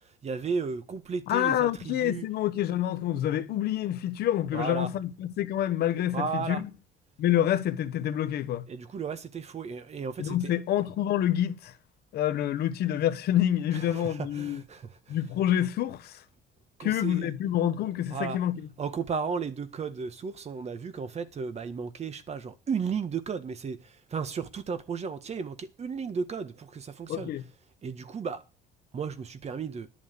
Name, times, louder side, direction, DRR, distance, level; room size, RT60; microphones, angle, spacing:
voice 1, 0.2-2.2 4.5-4.9 6.1-6.6 8.7-10.5 13.7-15.2 16.8-17.3 18.1-18.4 18.8-27.3 27.8-28.4 28.9-29.9, right 5 dB, 40° right, 1.6 m, -34 dB
voice 2, 1.3-6.7 7.2-8.6 10.2-11.7 12.1-14.6 15.1-16.2 16.8-18.7 27.1-27.4, left 11 dB, 70° left, 1.2 m, -27 dB
11.5 x 7.1 x 6.9 m
cardioid pair, 110°, 17 cm